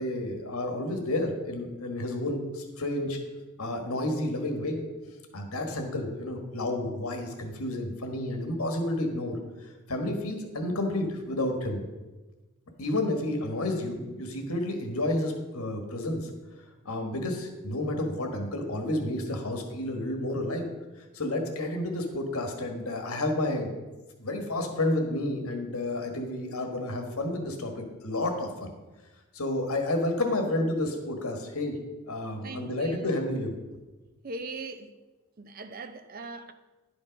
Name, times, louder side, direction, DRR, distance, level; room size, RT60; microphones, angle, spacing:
voice 1, 0.0-3.2 3.6-4.8 5.3-9.4 9.9-11.8 12.8-16.3 16.8-20.7 21.1-23.7 24.2-28.7 29.3-31.8 32.1-33.6, left 1 dB, 75° left, 1.5 m, -30 dB
voice 2, 32.4-33.3 34.2-34.9 35.4-36.5, right 3 dB, 40° right, 0.5 m, -40 dB
10.5 x 5.3 x 5.2 m
head